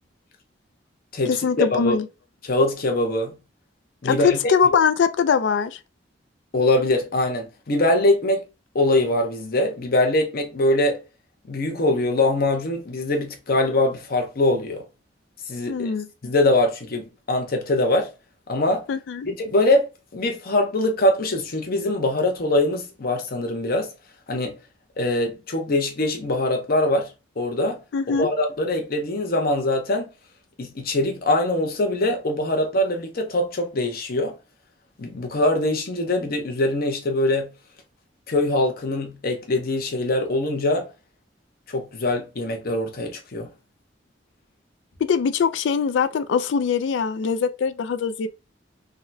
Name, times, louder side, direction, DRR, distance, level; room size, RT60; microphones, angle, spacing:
voice 1, 1.3-2.1 4.0-5.8 15.7-16.1 18.9-19.3 27.9-28.3 45.0-48.3, left 6 dB, 70° left, 0.3 m, -22 dB
voice 2, 2.4-3.4 4.0-4.4 6.5-8.4 8.7-11.0 11.5-14.8 15.5-15.9 16.2-18.1 18.5-18.9 19.2-23.9 24.3-24.6 25.0-27.8 28.1-30.1 30.6-34.4 35.0-37.5 38.3-40.9 41.7-43.5, left 1 dB, 55° left, 0.8 m, -23 dB
3.5 x 2.2 x 2.6 m
head